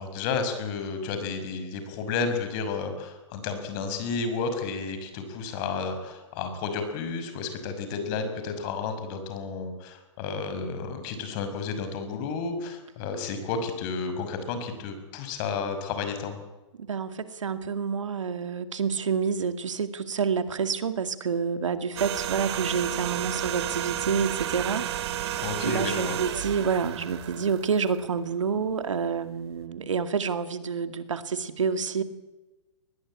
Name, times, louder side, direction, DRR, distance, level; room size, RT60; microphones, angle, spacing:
voice 1, 0.0-16.4 25.4-26.2, left 5 dB, 40° left, 8 dB, 6.0 m, -32 dB
voice 2, 16.8-24.8 25.2-32.0, right 6 dB, 80° right, 10 dB, 2.3 m, -28 dB
sound 1, 22.0-28.3 28.6-28.7, right 11 dB, 60° right, 2.5 m, -32 dB
22.5 x 20.5 x 8.8 m, 1.1 s
hypercardioid pair, 130°, 16 cm